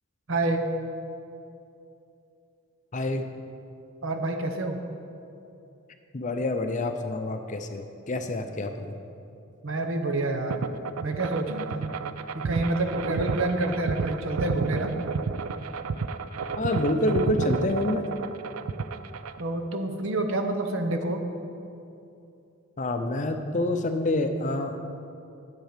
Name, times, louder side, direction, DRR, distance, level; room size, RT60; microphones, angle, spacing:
voice 1, 0.3-0.7 4.0-4.8 9.6-10.6 11.0-11.9 12.3-14.9 19.4-21.2, right 2 dB, 65° right, 5 dB, 0.9 m, -28 dB
voice 2, 2.9-3.3 6.1-8.9 16.6-18.1 22.8-24.8, left 1 dB, 35° left, 6 dB, 0.6 m, -27 dB
sound 1, 10.5-19.4, right 5 dB, 85° right, 0.4 m, -31 dB
10.5 x 7.6 x 5.0 m, 2.7 s
head